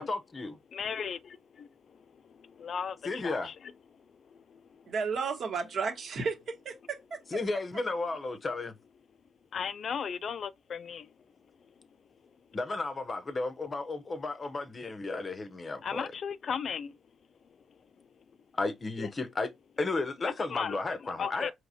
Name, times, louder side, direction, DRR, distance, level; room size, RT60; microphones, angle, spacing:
voice 1, 0.0-0.5 3.0-3.5 7.3-8.8 12.5-16.1 18.5-19.5 19.8-21.5, left 3 dB, 30° left, 0.7 m, -33 dB
voice 2, 0.7-3.6 4.3-4.8 9.5-11.1 15.8-17.0 19.0-19.1 20.2-21.5, left 7 dB, 55° left, 0.3 m, -37 dB
voice 3, 4.9-7.2, right 5 dB, 55° right, 1.2 m, -33 dB
4.7 x 3.1 x 2.7 m
cardioid pair, 90°, 0 cm